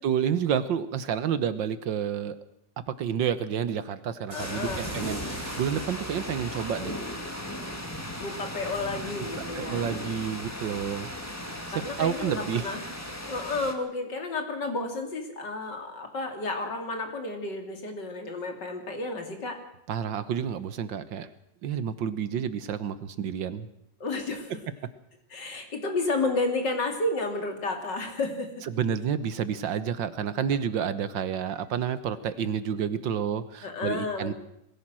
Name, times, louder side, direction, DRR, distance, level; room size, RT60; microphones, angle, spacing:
voice 1, 0.0-2.4 3.0-7.0 9.6-11.1 11.5-12.7 19.9-21.3 21.6-23.7 28.7-34.3, right 8 dB, 75° right, 13 dB, 1.8 m, -29 dB
voice 2, 4.3-4.9 8.2-9.9 11.7-12.8 13.3-19.5 24.0-24.6 25.3-28.5 32.7-32.8 33.6-34.3, left 3 dB, 65° left, 4 dB, 3.4 m, -31 dB
sound 1, 4.3-6.8, right 1 dB, 20° right, 4.5 m, -42 dB
sound 2, 4.4-13.7, left 1 dB, 10° left, 2.0 m, -37 dB
21.5 x 16.0 x 7.6 m, 0.76 s
omnidirectional pair, 2.0 m